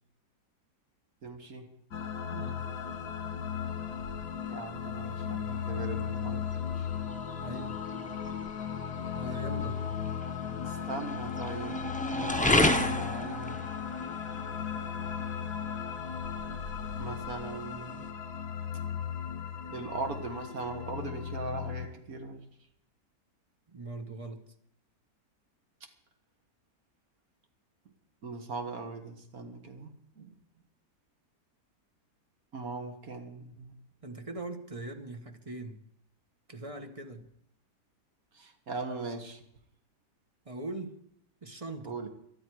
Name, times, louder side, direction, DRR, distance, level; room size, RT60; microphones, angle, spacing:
voice 1, 1.2-1.7 4.5-6.9 10.7-13.7 17.0-18.1 19.7-22.5 25.8-25.9 28.2-30.3 32.5-33.7 38.3-39.4 41.8-42.1, right 3 dB, 55° right, 6 dB, 2.0 m, -40 dB
sound 1, 1.9-21.9, left 8 dB, 65° left, 1.8 m, -36 dB
voice 2, 2.3-2.6 5.9-6.0 7.4-7.9 9.1-9.9 23.7-24.4 34.0-35.8 36.5-37.3 40.4-41.0 41.4-41.9, right 2 dB, 25° right, 7 dB, 0.9 m, -41 dB
sound 2, 2.6-18.1, left 1 dB, 10° left, 0.3 m, -35 dB
19.0 x 12.0 x 4.7 m, 0.73 s
omnidirectional pair, 1.8 m